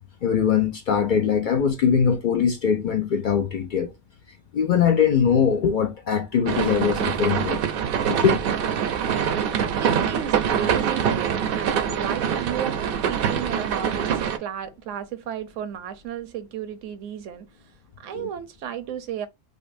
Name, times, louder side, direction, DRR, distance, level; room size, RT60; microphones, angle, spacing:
voice 1, 0.2-3.9 4.5-7.6 8.1-8.8 9.3-9.4 18.1-18.3, left 7 dB, 65° left, 0.5 m, -22 dB
sound 1, 6.5-14.4, right 8 dB, 60° right, 0.6 m, -24 dB
voice 2, 9.5-17.7 18.0-19.3, right 9 dB, 80° right, 1.0 m, -33 dB
5.1 x 2.0 x 2.5 m
omnidirectional pair, 1.3 m